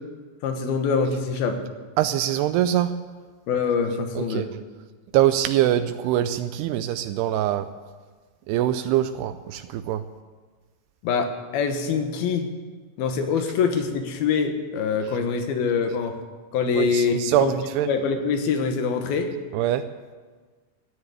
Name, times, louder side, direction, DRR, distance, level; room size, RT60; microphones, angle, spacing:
voice 1, 0.4-1.6 3.5-4.5 11.0-12.5 13.0-16.2 16.5-17.5 17.8-19.3, left 5 dB, 70° left, 5 dB, 3.2 m, -24 dB
voice 2, 2.0-2.9 4.2-4.5 5.1-7.7 8.5-10.0 16.8-17.9 19.5-19.8, right 12 dB, 85° right, 9 dB, 2.6 m, -23 dB
14.0 x 10.0 x 9.5 m, 1.4 s
omnidirectional pair, 4.7 m